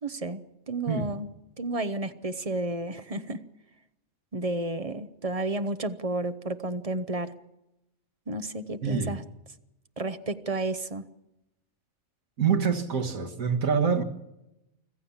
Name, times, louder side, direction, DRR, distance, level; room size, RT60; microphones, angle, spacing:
voice 1, 0.0-1.3 1.6-3.4 4.3-7.3 8.3-9.2 10.0-11.1, right 2 dB, 30° right, 1.0 m, -31 dB
voice 2, 8.8-9.2 12.4-14.0, right 6 dB, 85° right, 2.2 m, -26 dB
25.5 x 14.5 x 7.2 m
omnidirectional pair, 1.4 m